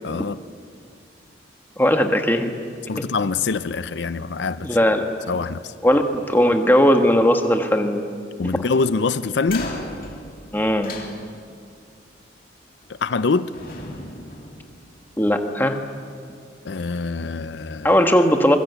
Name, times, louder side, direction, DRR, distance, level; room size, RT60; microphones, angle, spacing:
voice 1, 0.0-0.4 2.9-4.7 5.3-5.7 8.4-9.7 12.9-13.5 16.6-17.9, left 4 dB, 80° left, 14 dB, 0.6 m, -24 dB
voice 2, 1.8-2.5 3.0-3.1 4.6-5.0 5.8-8.0 10.5-10.9 15.2-15.8 17.8-18.6, equal, 10° left, 5 dB, 1.5 m, -18 dB
sound 1, 9.4-11.7 12.8-13.2 13.5-15.3, left 2 dB, 50° left, 3.1 m, -36 dB
24.5 x 21.5 x 8.1 m, 2.2 s
head